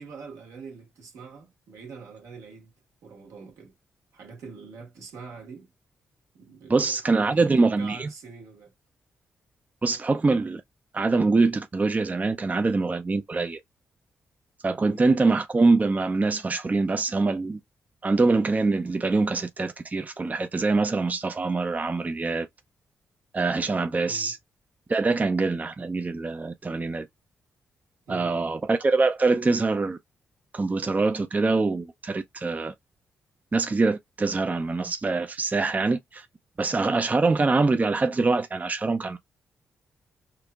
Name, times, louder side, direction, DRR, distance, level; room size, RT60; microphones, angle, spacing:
voice 1, 0.0-2.7 3.0-3.7 4.1-5.7 6.3-6.7 7.0-8.7 14.8-15.0 17.1-17.2 24.0-24.3 28.1-28.4, right 4 dB, 75° right, 1.5 m, -44 dB
voice 2, 6.7-8.1 9.8-10.6 10.9-13.6 14.6-17.6 18.0-22.5 23.3-24.4 24.9-27.1 28.1-30.0 30.5-32.7 33.5-36.3 36.6-39.2, right 3 dB, 30° right, 0.5 m, -24 dB
4.5 x 2.5 x 2.3 m
supercardioid pair, 45°, 5 cm